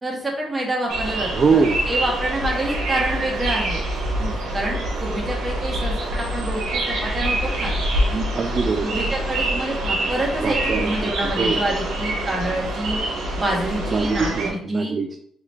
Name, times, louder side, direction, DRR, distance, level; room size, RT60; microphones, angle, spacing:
voice 1, 0.0-1.6 1.9-3.8 4.5-7.7 8.8-13.0 13.4-15.0, right 1 dB, 20° right, -2 dB, 1.5 m, -27 dB
sound 1, 0.9-14.5, right 1 dB, 85° right, 1.2 m, -25 dB
voice 2, 1.3-1.8 4.2-4.4 8.1-8.9 10.4-11.6 13.9-15.2, right 5 dB, 40° right, 4 dB, 0.4 m, -23 dB
4.7 x 3.5 x 2.7 m, 0.67 s
cardioid pair, 90°, 0 cm